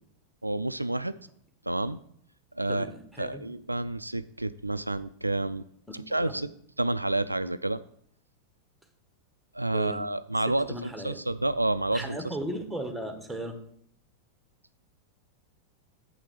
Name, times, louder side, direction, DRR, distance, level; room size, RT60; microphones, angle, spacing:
voice 1, 0.4-1.1 1.7-2.0 2.6-2.9 3.2-5.6 5.9-7.8 9.5-12.3, right 2 dB, 85° right, 13 dB, 0.3 m, -29 dB
voice 2, 2.7-3.4 6.1-6.3 9.7-10.0 10.7-11.2 11.9-13.6, right 1 dB, ahead, 5 dB, 1.5 m, -36 dB
7.5 x 5.8 x 6.8 m, 0.66 s
figure-of-eight pair, 90°, 0 cm